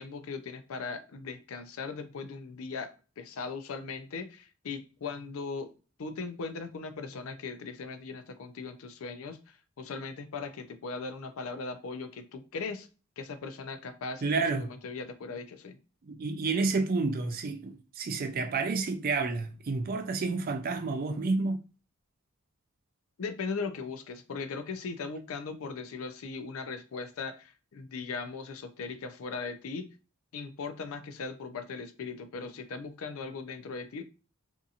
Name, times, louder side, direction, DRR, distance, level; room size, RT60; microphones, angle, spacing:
voice 1, 0.0-5.7 6.0-12.9 13.2-15.8 23.2-29.9 30.3-34.0, left 4 dB, 75° left, 0.4 m, -39 dB
voice 2, 14.2-14.7 16.1-21.6, right 3 dB, 45° right, 0.4 m, -30 dB
2.7 x 2.6 x 2.4 m
head